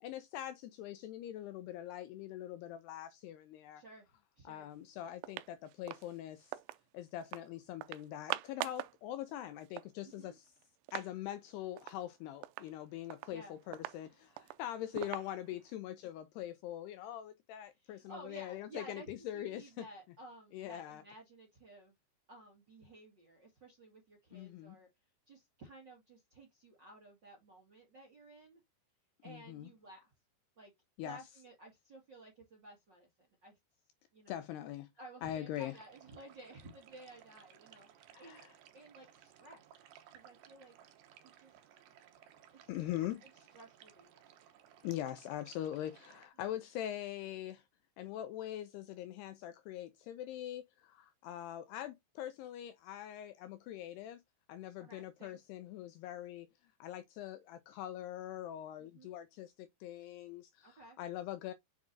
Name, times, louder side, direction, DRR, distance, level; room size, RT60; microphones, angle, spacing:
voice 1, 0.0-3.8 4.5-6.5 6.9-10.5 10.9-19.9 20.5-21.0 24.3-24.8 29.3-29.7 31.0-31.2 34.3-34.9 35.2-35.7 38.1-38.5 42.7-43.2 44.8-47.6 48.0-54.2 54.5-56.5 56.8-61.5, left 12 dB, 85° left, 2.4 m, -43 dB
voice 2, 3.7-4.1 4.3-4.7 10.0-10.3 13.3-13.5 17.7-21.9 22.3-24.9 25.3-28.6 29.2-30.1 30.6-30.7 31.0-33.6 34.1-34.4 35.0-39.6 40.1-40.7 41.2-41.5 42.6-44.2 54.8-55.4 58.8-59.1 60.6-61.0, right 2 dB, 45° right, 1.4 m, -55 dB
sound 1, 4.7-4.8 5.2-6.8 7.2-7.5 7.8-9.0 9.3-9.4 9.6-11.1 11.5-11.6 11.8-12.0 12.4-15.7, right 18 dB, 90° right, 3.0 m, -44 dB
sound 2, 35.5-46.3, right 10 dB, 70° right, 2.3 m, -61 dB
7.3 x 6.1 x 2.7 m
omnidirectional pair, 5.3 m